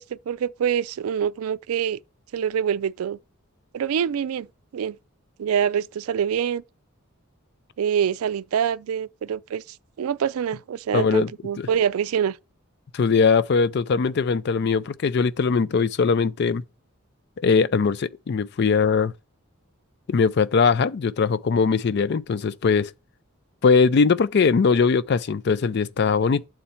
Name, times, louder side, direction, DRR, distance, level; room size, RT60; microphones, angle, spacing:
voice 1, 0.0-2.0 2.3-3.2 3.7-4.5 4.7-5.0 5.4-6.6 7.8-12.4, right 8 dB, 85° right, 0.4 m, -25 dB
voice 2, 10.9-11.3 11.6-11.7 12.9-16.6 17.4-19.1 20.1-22.9 23.6-26.4, left 5 dB, 50° left, 0.4 m, -20 dB
7.6 x 4.3 x 5.7 m
head